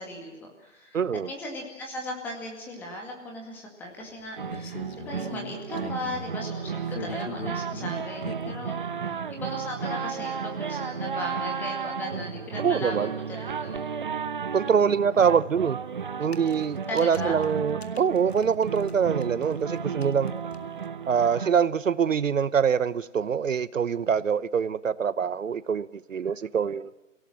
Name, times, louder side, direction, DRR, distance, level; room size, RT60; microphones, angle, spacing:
voice 1, 0.0-1.0 1.3-8.8 9.1-13.9 14.6-15.0 16.9-17.4, left 1 dB, 5° left, 2.1 m, -37 dB
voice 2, 0.9-1.3 12.6-13.1 14.5-15.8 16.2-20.3 21.1-26.9, right 7 dB, 75° right, 0.9 m, -24 dB
sound 1, 4.0-6.3 6.8-8.7 9.6-9.7 10.1-10.2 10.5-10.6 10.8-10.9 12.9-13.0 13.2-13.3 15.3-15.4 16.1-19.0 19.2-20.9, left 5 dB, 55° left, 2.0 m, -42 dB
sound 2, 4.4-21.5, right 6 dB, 40° right, 0.9 m, -33 dB
28.5 x 17.5 x 7.6 m
hypercardioid pair, 165°, 39 cm